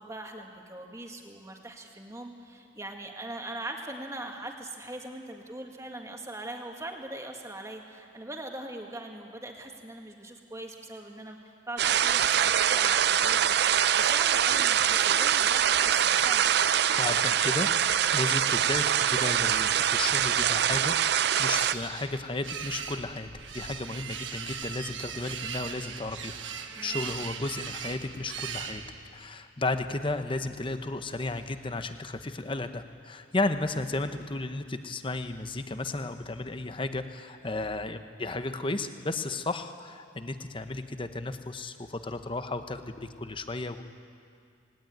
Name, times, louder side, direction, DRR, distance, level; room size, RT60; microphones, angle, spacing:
voice 1, 0.0-16.7 26.8-27.0, right 1 dB, 15° right, 2 dB, 1.8 m, -41 dB
sound 1, 11.8-21.7, right 9 dB, 60° right, 0.5 m, -24 dB
voice 2, 17.0-17.7 18.1-28.8 29.1-43.8, left 2 dB, 25° left, 9 dB, 0.9 m, -34 dB
sound 2, 20.4-29.3, right 7 dB, 80° right, 1.2 m, -39 dB
19.0 x 18.5 x 9.3 m, 2.4 s
head